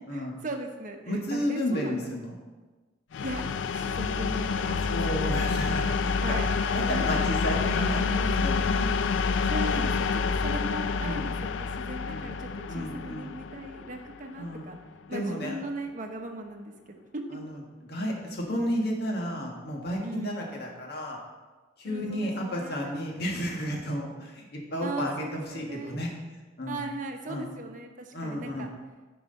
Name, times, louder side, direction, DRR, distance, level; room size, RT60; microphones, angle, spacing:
voice 1, 0.1-2.1 3.2-3.4 3.7-5.0 6.2-6.5 6.9-7.1 7.7-8.5 9.4-14.8 15.1-17.2 20.0-20.4 21.8-23.0 24.8-26.1 26.7-28.7, right 2 dB, 45° right, 3 dB, 0.9 m, -38 dB
voice 2, 1.1-2.3 3.4-3.5 4.6-6.0 6.7-8.9 9.4-10.0 11.0-11.3 12.1-12.3 12.7-13.3 14.4-14.7 15.1-15.6 17.3-17.6 17.9-21.2 21.8-26.1 26.6-26.8 27.3-27.5 28.1-28.7, equal, 55° left, -1 dB, 1.7 m, -32 dB
sound 1, 3.1-14.8, left 5 dB, 80° left, 0.4 m, -28 dB
9.6 x 4.8 x 5.2 m, 1.3 s
head